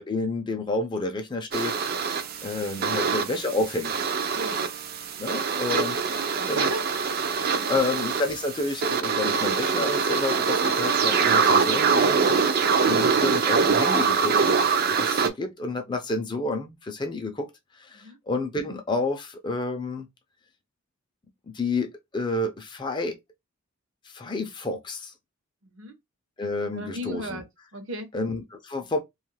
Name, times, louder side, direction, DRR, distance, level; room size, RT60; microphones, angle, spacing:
voice 1, 0.0-4.0 5.2-6.7 7.7-14.3 15.0-17.5 17.8-20.1 21.5-23.2 24.1-25.1 26.4-27.4 28.1-29.0, left 2 dB, 20° left, 0.4 m, -30 dB
sound 1, 1.5-15.3, right 5 dB, 45° right, 0.4 m, -24 dB
voice 2, 6.1-6.8 7.2-7.8 17.9-18.2 25.6-26.0 26.7-27.4 27.7-28.1, right 1 dB, 65° right, 0.8 m, -36 dB
2.8 x 2.3 x 3.1 m
head